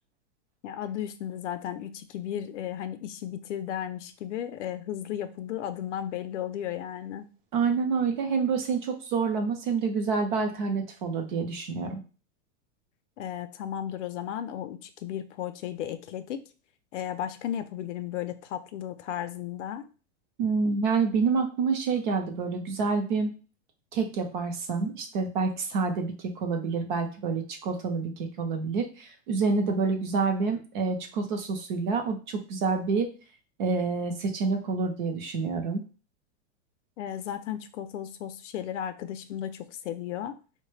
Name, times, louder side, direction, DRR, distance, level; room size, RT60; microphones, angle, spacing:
voice 1, 0.6-7.3 13.2-16.4 16.9-19.9 37.0-40.3, left 10 dB, 70° left, 10 dB, 0.5 m, -34 dB
voice 2, 7.5-12.0 20.4-23.4 23.9-33.1 33.6-35.8, right 4 dB, 40° right, 4 dB, 0.6 m, -28 dB
3.8 x 2.1 x 3.2 m, 0.35 s
supercardioid pair, 165°, 38 cm